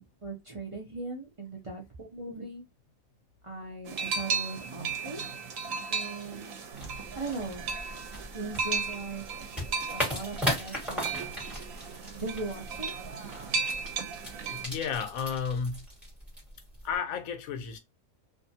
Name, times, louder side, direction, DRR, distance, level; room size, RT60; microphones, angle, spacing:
voice 1, 0.0-2.6 3.4-5.2 5.9-6.5 7.1-7.7 8.3-9.5 9.9-11.3 12.1-12.9, right 3 dB, 40° right, 0.4 m, -39 dB
sound 1, 3.9-14.6, right 5 dB, 80° right, 1.0 m, -35 dB
sound 2, 6.7-17.0, equal, ahead, 1.4 m, -38 dB
voice 2, 14.3-15.9 16.8-17.8, left 6 dB, 90° left, 1.1 m, -33 dB
2.6 x 2.4 x 2.6 m
omnidirectional pair, 1.4 m